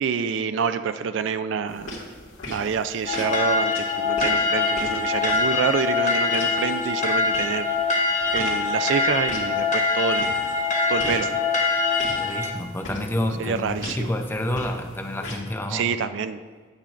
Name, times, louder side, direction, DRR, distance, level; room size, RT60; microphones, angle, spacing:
voice 1, 0.0-2.0 2.5-7.7 8.3-10.3 10.9-11.3 13.4-14.1 15.7-16.4, right 6 dB, 65° right, 12 dB, 0.3 m, -27 dB
sound 1, 1.7-15.4, left 2 dB, 80° left, 2.0 m, -40 dB
sound 2, 3.1-12.5, left 3 dB, 40° left, 0.9 m, -23 dB
voice 2, 12.1-15.9, left 1 dB, 10° left, 4 dB, 0.5 m, -29 dB
9.0 x 8.7 x 2.5 m, 1.5 s
head